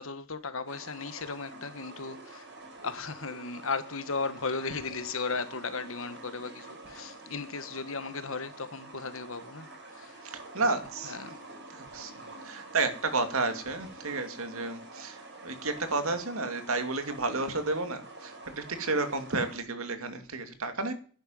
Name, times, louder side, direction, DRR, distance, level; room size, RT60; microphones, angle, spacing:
voice 1, 0.0-2.5 2.8-9.7 9.9-10.2 10.6-10.8 11.0-11.4, left 4 dB, 65° left, 1.4 m, -36 dB
sound 1, 0.7-19.6, right 2 dB, 55° right, 5.8 m, -47 dB
voice 2, 10.2-11.2 11.7-12.1 12.4-20.9, right 3 dB, 70° right, 2.5 m, -31 dB
11.0 x 9.0 x 9.1 m
head